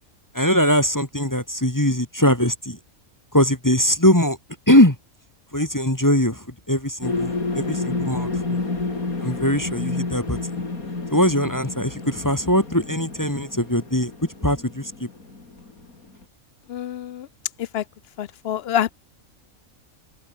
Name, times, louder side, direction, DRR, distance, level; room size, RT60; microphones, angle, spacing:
voice 1, 0.3-2.8 3.3-4.4 4.7-5.0 5.5-8.6 9.2-10.4 11.1-14.1 14.4-14.9, equal, 15° left, 2.2 m, -21 dB
sound 1, 7.0-16.2, left 3 dB, 80° left, 4.3 m, -30 dB
voice 2, 16.7-17.3 17.6-17.8 18.2-18.9, left 11 dB, 60° left, 0.7 m, -26 dB
open air
omnidirectional pair, 1.5 m